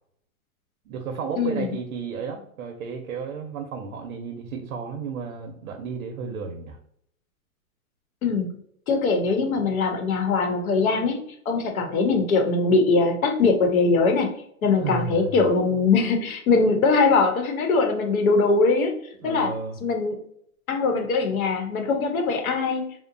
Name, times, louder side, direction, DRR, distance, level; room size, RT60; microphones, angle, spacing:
voice 1, 0.9-6.8 14.8-15.5 19.1-19.8, right 5 dB, 70° right, 3 dB, 0.6 m, -33 dB
voice 2, 1.4-1.7 8.2-8.6 8.9-11.2 11.5-14.3 14.6-18.9 19.2-19.5 19.8-20.2 20.7-23.0, left 4 dB, 75° left, 4 dB, 0.9 m, -21 dB
2.8 x 2.0 x 2.5 m, 0.67 s
hypercardioid pair, 170°, 42 cm